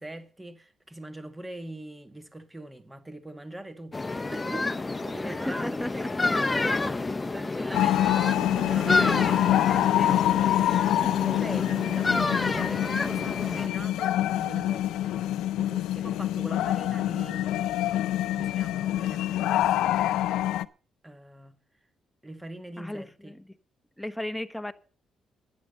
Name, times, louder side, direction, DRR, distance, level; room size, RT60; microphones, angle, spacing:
voice 1, 0.0-4.0 4.3-7.0 7.3-10.3 11.2-17.7 18.3-19.9 21.0-21.5 22.2-23.4, right 1 dB, 15° right, 1.8 m, -42 dB
sound 1, 3.9-13.7, left 3 dB, 20° left, 0.9 m, -29 dB
voice 2, 5.2-6.1 8.9-9.2 9.8-10.0 22.8-23.5 24.0-24.7, left 1 dB, 5° left, 1.2 m, -35 dB
sound 2, 7.7-20.7, left 13 dB, 85° left, 0.6 m, -26 dB
11.5 x 10.0 x 6.6 m
cardioid pair, 90°, 0 cm